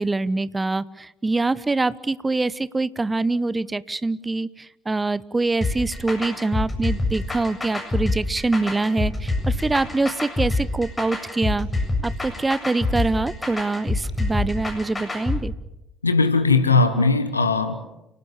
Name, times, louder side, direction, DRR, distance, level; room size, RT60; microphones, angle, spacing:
voice 1, 0.0-4.5 4.9-11.7 12.0-15.5, right 3 dB, 20° right, 18 dB, 1.0 m, -24 dB
sound 1, 5.6-15.4, left 2 dB, 20° left, 7.6 m, -26 dB
voice 2, 16.0-17.9, left 3 dB, 85° left, 11 dB, 1.5 m, -19 dB
29.5 x 18.5 x 7.3 m, 0.91 s
figure-of-eight pair, 50°, 0 cm